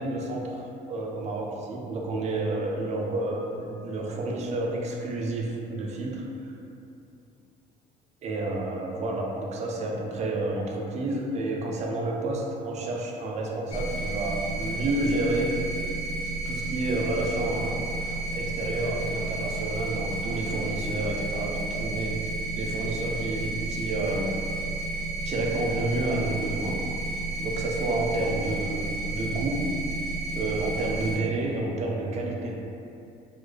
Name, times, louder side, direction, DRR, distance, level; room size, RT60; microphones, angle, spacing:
voice 1, 0.0-6.2 8.2-15.6 16.5-24.3 25.2-26.8 27.4-29.8 30.3-32.6, right 2 dB, 40° right, -1 dB, 0.4 m, -30 dB
sound 1, 13.7-31.2, right 2 dB, 35° left, 0.8 m, -32 dB
2.4 x 2.1 x 2.4 m, 2.6 s
cardioid pair, 110°, 17 cm